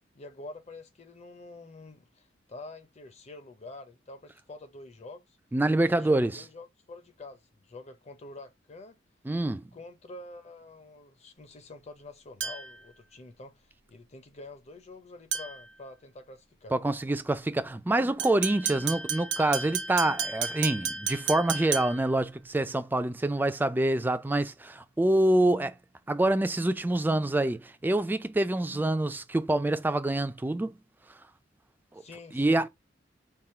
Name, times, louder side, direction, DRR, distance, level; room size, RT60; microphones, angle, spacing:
voice 1, 0.1-5.4 5.8-9.0 9.5-16.8 18.7-19.0 31.9-32.6, left 2 dB, 35° left, 0.7 m, -47 dB
voice 2, 5.5-6.4 9.3-9.7 16.7-25.8 26.1-30.7 32.3-32.7, right 1 dB, 10° right, 0.3 m, -26 dB
sound 1, 12.4-12.8 15.3-15.7 18.2-22.1, right 7 dB, 70° right, 0.6 m, -33 dB
3.6 x 2.3 x 4.3 m
head